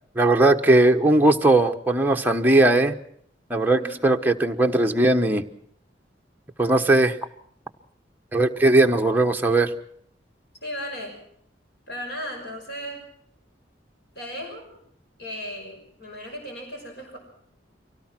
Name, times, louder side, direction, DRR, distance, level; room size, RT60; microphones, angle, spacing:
voice 1, 0.2-2.9 3.5-5.4 6.6-7.2 8.3-9.7, right 2 dB, 10° right, 3 dB, 1.1 m, -19 dB
voice 2, 3.7-4.0 10.6-11.2 11.9-13.0 14.1-14.7 15.2-17.2, equal, 65° left, 2 dB, 5.9 m, -36 dB
24.5 x 17.5 x 6.1 m, 0.67 s
head